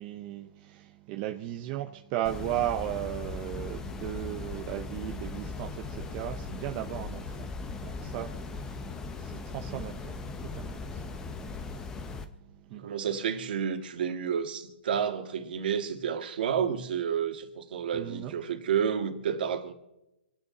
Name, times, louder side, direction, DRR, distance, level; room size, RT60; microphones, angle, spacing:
voice 1, 0.0-7.5 7.8-11.4 12.7-12.9 17.9-18.3, right 13 dB, 25° right, 0.7 m, -36 dB
sound 1, 2.2-12.3, left 4 dB, 10° left, 0.8 m, -38 dB
voice 2, 12.7-19.7, right 8 dB, 55° right, 2.0 m, -30 dB
27.5 x 9.4 x 4.1 m
hypercardioid pair, 165°, 6 cm